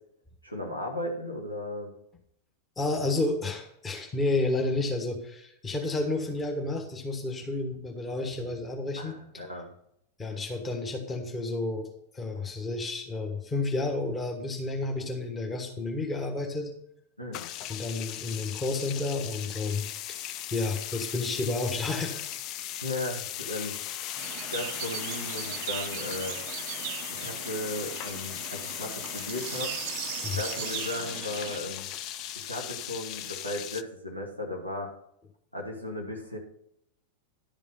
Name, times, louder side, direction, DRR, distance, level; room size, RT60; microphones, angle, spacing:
voice 1, 0.4-1.9 9.0-9.7 17.2-17.4 22.8-23.8 24.0-24.1 24.5-26.4 27.1-29.8 30.3-31.9 32.3-34.9 35.5-36.4, left 1 dB, 90° left, 0 dB, 1.6 m, -36 dB
voice 2, 2.8-9.2 10.2-11.9 12.1-16.7 17.7-19.8 20.1-20.2 20.5-22.2 30.2-30.4, left 2 dB, 20° left, 3 dB, 1.4 m, -31 dB
sound 1, 17.3-33.8, left 12 dB, 40° left, 0.5 m, -38 dB
sound 2, 24.2-31.6, right 14 dB, 45° right, 0.4 m, -38 dB
11.0 x 5.3 x 5.5 m, 0.75 s
figure-of-eight pair, 90°, 0 cm